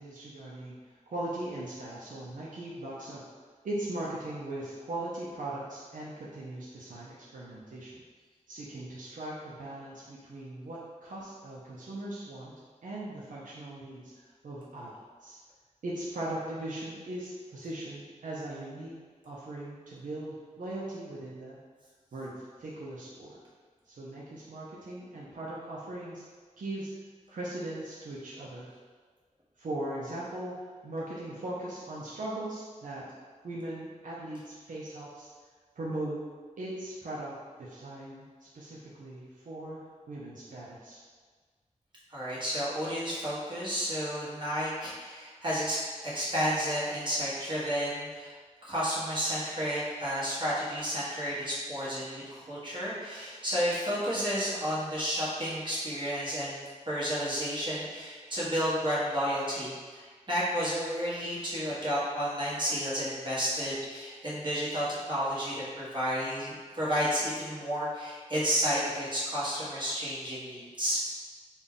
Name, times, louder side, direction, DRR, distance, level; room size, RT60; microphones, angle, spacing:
voice 1, 0.0-3.2 3.6-8.0 8.5-12.5 12.8-14.9 15.2-15.4 15.8-19.0 19.3-21.6 22.1-22.3 22.6-23.4 23.9-26.3 26.6-26.9 27.3-28.7 29.6-33.0 33.4-35.3 35.8-36.2 36.6-39.8 40.1-41.0, right 1 dB, 80° right, -6 dB, 0.6 m, -39 dB
voice 2, 42.1-48.3 48.6-71.0, equal, 35° right, -8 dB, 1.3 m, -31 dB
3.9 x 2.3 x 3.6 m, 1.5 s
wide cardioid pair, 85°, 13 cm